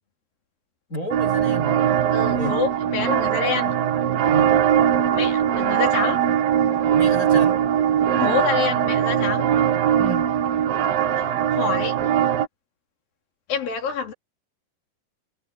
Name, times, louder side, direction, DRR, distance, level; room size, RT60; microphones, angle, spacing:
voice 1, 0.9-1.8 2.2-2.6 4.3-4.6 6.9-7.7 10.0-10.3, right 1 dB, 25° left, 5.0 m, -32 dB
sound 1, 1.1-12.5, right 9 dB, 90° right, 3.6 m, -21 dB
voice 2, 2.1-3.7 5.1-6.2 8.2-9.5 11.2-11.3 11.5-12.0 13.5-14.1, left 6 dB, 75° left, 4.9 m, -26 dB
omnidirectional pair, 4.0 m